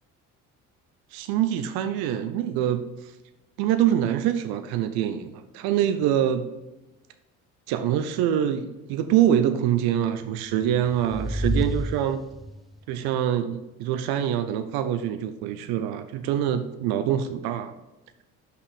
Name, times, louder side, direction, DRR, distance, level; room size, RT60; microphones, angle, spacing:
voice 1, 1.1-3.1 3.6-6.5 7.7-12.2 12.9-17.7, right 10 dB, 70° right, 10 dB, 0.6 m, -25 dB
sound 1, 10.4-12.8, equal, ahead, 0.4 m, -30 dB
5.7 x 4.7 x 4.0 m, 1.0 s
hypercardioid pair, 55°, 40 cm